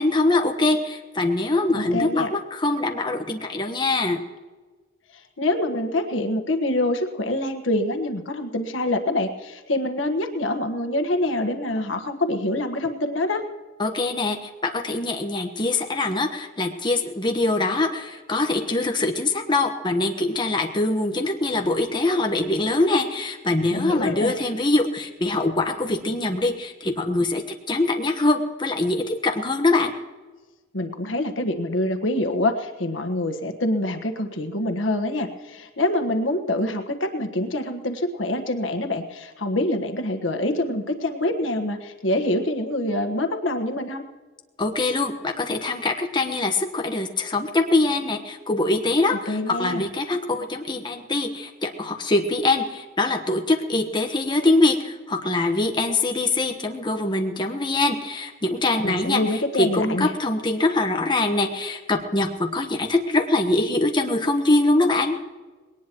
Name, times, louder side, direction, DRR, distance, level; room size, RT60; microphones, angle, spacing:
voice 1, 0.0-4.2 13.8-29.9 44.6-65.2, left 2 dB, 25° left, 4 dB, 1.3 m, -23 dB
voice 2, 1.7-2.3 5.4-13.4 23.7-24.3 30.7-44.1 49.3-49.8 58.8-60.1, left 1 dB, 90° left, 6 dB, 1.4 m, -25 dB
20.5 x 18.5 x 3.1 m, 1.3 s
head